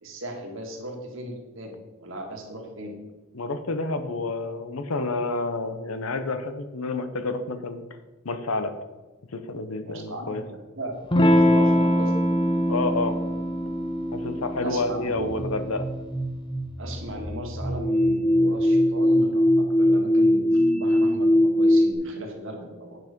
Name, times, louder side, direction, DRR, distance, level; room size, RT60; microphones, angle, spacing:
voice 1, 0.0-2.9 9.8-10.9 11.3-12.3 14.6-15.3 16.8-23.0, right 1 dB, 60° right, 2 dB, 1.7 m, -37 dB
voice 2, 3.3-7.8 8.2-8.7 9.3-10.4 12.7-13.2 14.1-15.8, left 3 dB, 75° left, 10 dB, 0.8 m, -29 dB
Electric guitar / Strum, 11.1-16.2, equal, 20° left, 0.8 m, -23 dB
sound 1, 15.2-21.9, left 1 dB, 5° left, 1.0 m, -22 dB
8.9 x 5.9 x 5.2 m, 1.1 s
head